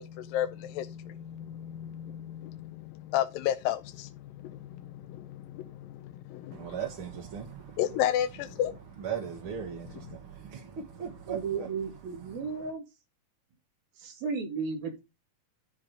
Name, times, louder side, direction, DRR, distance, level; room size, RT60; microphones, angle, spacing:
voice 1, 0.0-6.8 7.8-8.8, left 11 dB, 80° left, 2.3 m, -33 dB
voice 2, 6.5-7.8 9.0-11.7, right 7 dB, 45° right, 2.0 m, -38 dB
voice 3, 11.3-12.8 14.0-15.0, right 5 dB, 90° right, 4.2 m, -34 dB
12.5 x 4.8 x 5.1 m
omnidirectional pair, 4.1 m